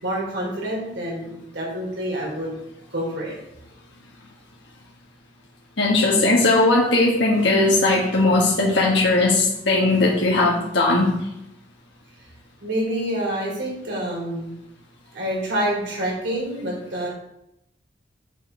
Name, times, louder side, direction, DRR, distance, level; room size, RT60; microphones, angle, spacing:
voice 1, 0.0-2.5 2.9-3.3 6.1-6.2 12.6-14.5 15.1-17.1, right 1 dB, 70° right, -3 dB, 3.7 m, -27 dB
voice 2, 5.8-11.1, left 2 dB, 65° left, -4 dB, 1.5 m, -18 dB
8.1 x 6.0 x 4.5 m, 0.82 s
head